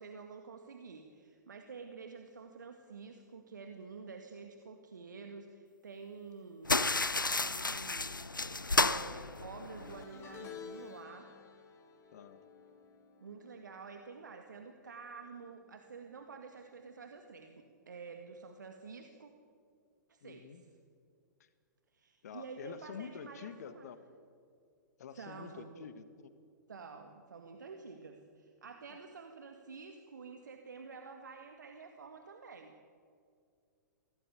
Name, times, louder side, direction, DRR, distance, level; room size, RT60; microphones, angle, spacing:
voice 1, 0.0-6.8 7.4-8.1 8.7-11.3 13.2-19.3 20.1-20.5 21.9-23.9 25.2-25.8 26.7-32.8, right 4 dB, 70° right, 5 dB, 2.0 m, -49 dB
sound 1, 6.6-10.0, left 3 dB, 85° left, 0.8 m, -32 dB
sound 2, 9.8-15.2 15.4-15.8 17.0-17.1, left 7 dB, 25° left, 4.0 m, -52 dB
voice 2, 20.2-20.6 21.4-21.5 22.2-24.0 25.0-26.3, left 7 dB, 55° left, 11 dB, 1.7 m, -47 dB
24.0 x 18.0 x 8.3 m, 2.3 s
figure-of-eight pair, 110°, 10 cm